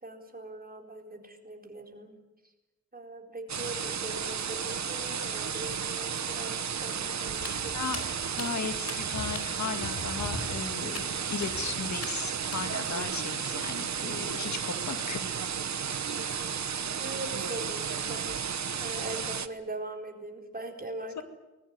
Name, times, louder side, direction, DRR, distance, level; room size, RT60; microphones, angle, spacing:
voice 1, 0.0-2.2 2.9-7.7 16.2-16.7 17.0-18.4 18.8-21.2, right 1 dB, 30° right, 2 dB, 4.3 m, -41 dB
sound 1, 3.5-19.5, right 7 dB, 70° right, 1.1 m, -33 dB
Walk footsteps, 7.3-12.9, left 2 dB, 55° left, 4.8 m, -42 dB
voice 2, 8.3-15.4 16.2-16.3 21.2-21.3, left 5 dB, 75° left, 8 dB, 2.0 m, -36 dB
23.0 x 21.0 x 9.5 m, 1.1 s
wide cardioid pair, 115°, 29 cm